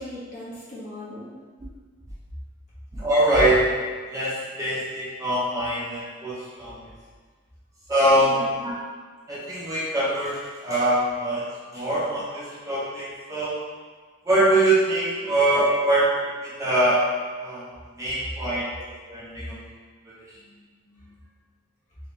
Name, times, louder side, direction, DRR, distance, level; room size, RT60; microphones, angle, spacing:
voice 1, 0.0-1.4 8.2-8.6 20.3-21.2, left 1 dB, 35° left, -8 dB, 1.0 m, -40 dB
voice 2, 2.9-3.7 4.1-6.9 7.9-8.7 9.3-13.6 14.3-17.1 17.4-17.7 18.0-19.6 20.1-20.2, right 1 dB, 15° right, -8 dB, 0.5 m, -23 dB
3.3 x 3.0 x 2.9 m, 1.5 s
head